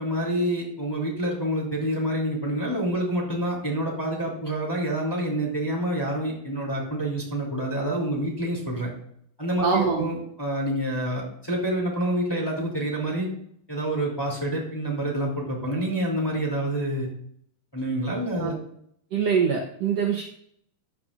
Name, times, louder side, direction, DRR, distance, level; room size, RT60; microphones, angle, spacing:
voice 1, 0.0-8.9 9.4-13.3 13.7-17.1 17.7-18.5, right 1 dB, 5° left, -3 dB, 2.6 m, -27 dB
voice 2, 9.6-10.1 18.4-18.6 19.1-20.2, right 6 dB, 65° right, 1 dB, 1.8 m, -23 dB
13.5 x 9.9 x 2.5 m, 0.68 s
omnidirectional pair, 3.9 m